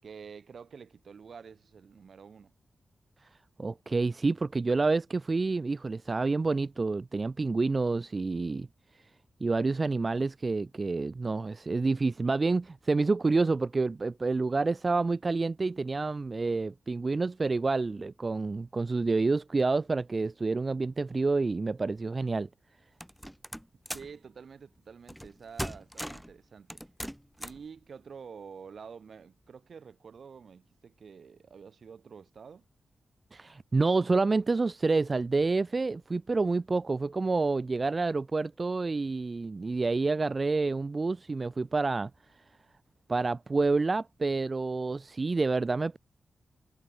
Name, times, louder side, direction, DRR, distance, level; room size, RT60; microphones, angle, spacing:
voice 1, 0.0-2.5 23.9-26.9 27.4-32.6, right 6 dB, 65° right, 6.7 m, -48 dB
voice 2, 3.6-8.7 9.4-22.5 33.3-42.1 43.1-46.0, right 3 dB, 40° right, 0.7 m, -28 dB
sound 1, 23.0-24.2 25.1-25.3 25.6-26.3 26.7-27.7, equal, ahead, 1.4 m, -39 dB
cardioid pair, 70°, 0 cm